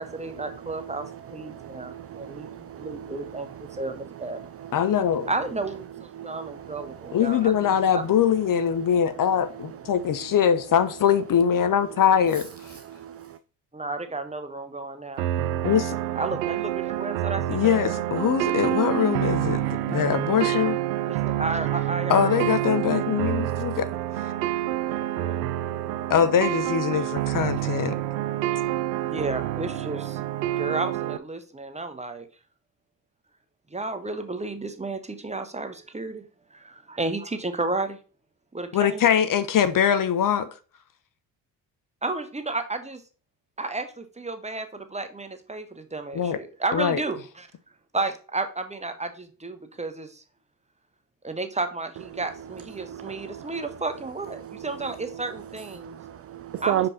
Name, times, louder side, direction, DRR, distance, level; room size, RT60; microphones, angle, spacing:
voice 1, 0.0-4.4 5.3-7.5 7.9-8.0 13.7-15.6 16.2-17.8 21.1-22.4 24.9-25.4 29.1-30.2 30.6-32.3 33.7-36.3 36.5-38.0 38.5-39.0 42.0-43.0 43.6-47.5 47.9-50.2 51.2-55.9 56.6-56.9, right 3 dB, 15° right, 1.2 m, -32 dB
voice 2, 1.5-3.2 6.2-6.5 12.9-13.3 52.9-53.4 55.8-56.9, right 12 dB, 30° right, 0.4 m, -33 dB
voice 3, 4.7-5.3 7.1-12.5 15.6-15.9 17.5-20.8 22.1-23.9 26.1-27.9 38.7-40.5 46.1-46.4 46.7-47.0, left 8 dB, 40° left, 0.8 m, -22 dB
sound 1, 15.2-31.2, right 14 dB, 80° right, 0.5 m, -27 dB
5.7 x 5.2 x 4.1 m
figure-of-eight pair, 45°, 50 cm